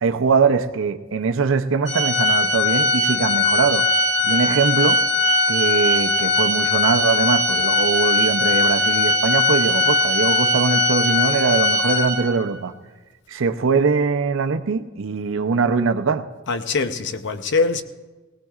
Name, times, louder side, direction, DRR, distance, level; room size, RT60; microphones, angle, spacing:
voice 1, 0.0-3.9 4.2-5.0 5.5-12.7 13.3-16.2, right 5 dB, 65° right, 0.6 m, -22 dB
Organ, 1.9-12.5, left 2 dB, 35° left, 1.8 m, -20 dB
voice 2, 16.5-17.8, left 4 dB, 60° left, 0.7 m, -22 dB
19.0 x 18.0 x 2.4 m
head